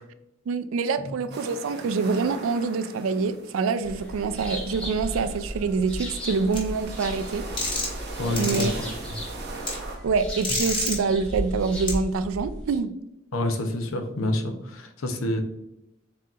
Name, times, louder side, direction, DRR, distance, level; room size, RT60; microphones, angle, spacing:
voice 1, 0.5-7.5 8.3-8.7 10.0-12.9, right 4 dB, 80° right, 11 dB, 0.3 m, -26 dB
sound 1, 1.3-10.0, right 3 dB, 50° right, 0.9 m, -40 dB
sound 2, 3.8-12.8, equal, 5° left, 1.2 m, -35 dB
sound 3, 6.5-6.6 7.6-8.0 8.4-8.6 9.6-9.7 10.4-11.0 11.9-12.0, left 2 dB, 25° left, 1.2 m, -27 dB
voice 2, 8.2-9.2 13.3-15.4, left 1 dB, 80° left, 6 dB, 0.7 m, -28 dB
7.3 x 2.8 x 2.4 m, 0.87 s
head